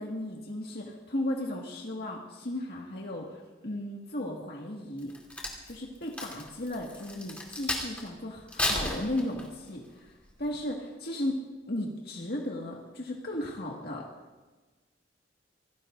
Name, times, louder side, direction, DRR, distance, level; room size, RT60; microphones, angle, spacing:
voice 1, 0.0-5.1 5.7-10.1 10.4-14.1, left 1 dB, 55° left, -2 dB, 1.9 m, -35 dB
Crack, 5.0-8.1 8.5-9.7 10.2-10.5, left 1 dB, 5° left, 3.1 m, -33 dB
27.0 x 18.5 x 2.6 m, 1.3 s
head